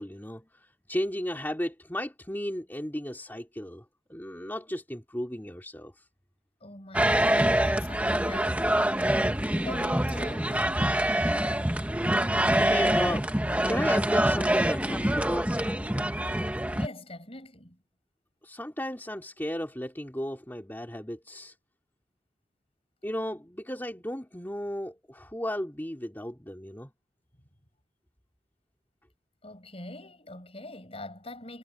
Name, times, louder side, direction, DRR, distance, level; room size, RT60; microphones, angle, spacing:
voice 1, 0.0-3.8 4.1-6.0 12.2-13.3 13.7-15.5 18.4-21.5 23.0-26.9, equal, 10° left, 2.9 m, -34 dB
voice 2, 6.6-9.4 9.6-10.9 16.7-17.8 29.4-31.6, left 1 dB, 30° left, 7.6 m, -43 dB
sound 1, 6.9-16.9, right 1 dB, 10° right, 1.4 m, -25 dB
head